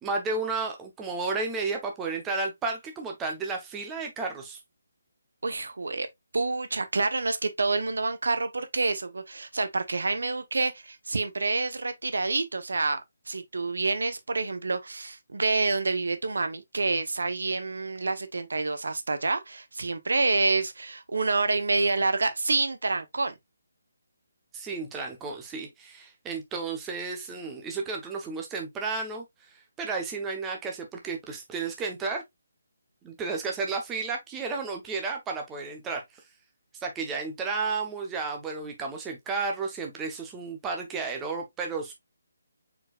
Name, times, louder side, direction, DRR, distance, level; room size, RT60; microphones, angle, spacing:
voice 1, 0.0-4.6 24.5-32.2 33.0-36.2 36.8-41.9, right 4 dB, 10° right, 0.8 m, -32 dB
voice 2, 5.4-6.1 6.3-13.0 13.3-23.3, right 3 dB, 80° right, 0.9 m, -28 dB
4.5 x 4.4 x 2.3 m
hypercardioid pair, 165°, 0 cm